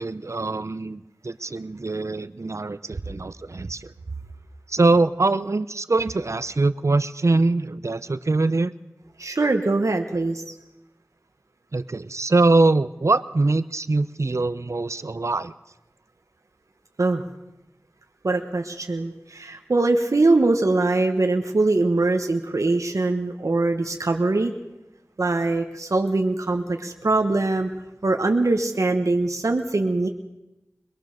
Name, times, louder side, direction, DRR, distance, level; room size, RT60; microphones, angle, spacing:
voice 1, 0.0-3.9 4.7-8.7 11.7-15.5, right 3 dB, 65° right, 14 dB, 0.7 m, -23 dB
voice 2, 9.2-10.5 17.0-17.2 18.2-24.5 25.2-27.7 28.0-30.1, right 2 dB, 80° right, 4 dB, 1.2 m, -22 dB
22.5 x 20.5 x 6.6 m, 0.99 s
wide cardioid pair, 50°, 5 cm